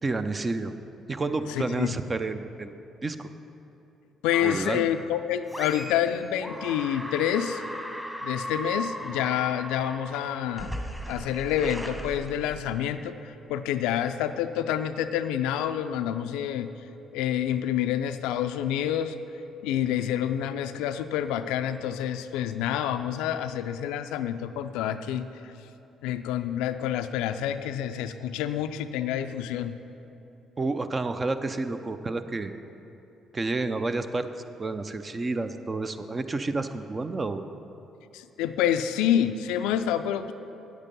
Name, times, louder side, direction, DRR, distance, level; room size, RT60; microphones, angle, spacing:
voice 1, 0.0-0.7 1.1-2.7 3.0-3.3 4.4-4.9 30.6-32.5 33.3-34.3 34.6-37.4, right 3 dB, 30° right, 9 dB, 0.6 m, -30 dB
voice 2, 1.5-2.0 4.2-7.6 8.2-10.7 11.1-16.7 17.1-19.2 19.6-25.5 26.0-29.7 38.1-40.3, left 10 dB, 80° left, 10 dB, 0.4 m, -28 dB
sound 1, 4.3-4.9 5.5-6.1 6.4-12.9, equal, ahead, 1.3 m, -37 dB
8.9 x 8.2 x 5.3 m, 3.0 s
hypercardioid pair, 55°, 0 cm